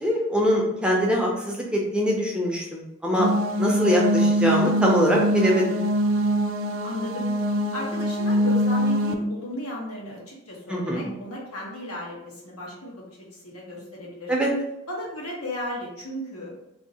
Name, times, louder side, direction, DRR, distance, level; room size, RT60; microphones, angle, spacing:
voice 1, 0.0-3.3 3.6-5.8 10.7-11.1 14.3-14.5, equal, 5° right, -3 dB, 0.5 m, -23 dB
sound 1, 3.2-9.1, equal, 65° right, 0.3 m, -23 dB
voice 2, 6.8-7.3 7.7-14.3 14.9-16.5, left 1 dB, 90° left, -3 dB, 1.2 m, -35 dB
2.7 x 2.7 x 4.0 m, 0.86 s
head